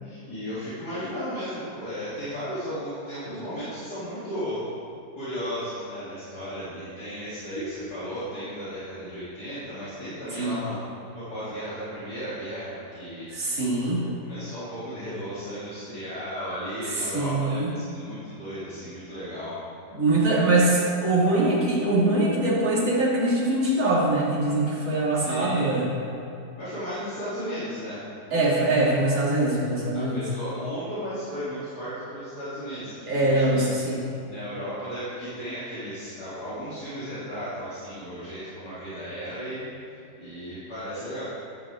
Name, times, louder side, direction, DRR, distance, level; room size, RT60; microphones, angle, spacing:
voice 1, 0.0-4.6 5.2-10.8 11.1-13.3 14.0-19.6 20.1-20.6 25.1-25.8 26.6-28.0 29.9-33.6 34.3-41.2, equal, 65° left, -13 dB, 3.9 m, -35 dB
voice 2, 13.3-14.0 17.1-17.7 19.9-25.9 28.3-30.2 33.1-34.0, right 2 dB, 50° right, -6 dB, 2.9 m, -23 dB
14.5 x 11.0 x 3.7 m, 2.6 s
omnidirectional pair, 1.8 m